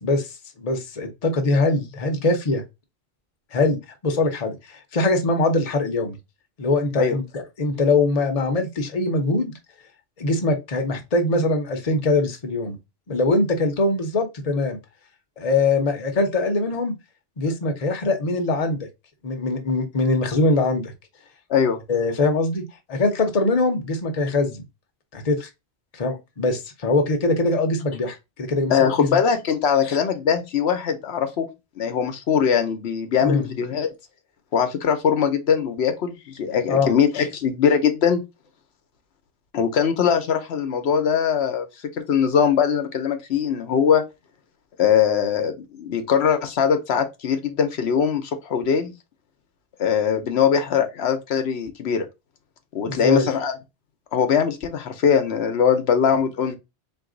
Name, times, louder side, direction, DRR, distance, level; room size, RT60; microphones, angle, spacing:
voice 1, 0.0-2.6 3.5-6.2 6.6-9.5 10.2-12.8 13.1-14.8 15.4-16.9 17.4-18.9 19.2-20.9 21.9-24.6 25.1-25.5 25.9-29.2 29.8-30.0 33.2-33.5 36.7-36.9 52.9-53.3, left 2 dB, 40° left, 0.8 m, -22 dB
voice 2, 21.5-21.8 28.7-31.5 31.8-33.9 34.5-38.2 39.5-41.7 42.0-44.0 44.8-48.9 49.8-52.1 52.7-53.5 54.1-56.6, left 7 dB, 75° left, 1.0 m, -21 dB
3.9 x 2.6 x 3.7 m
omnidirectional pair, 1.1 m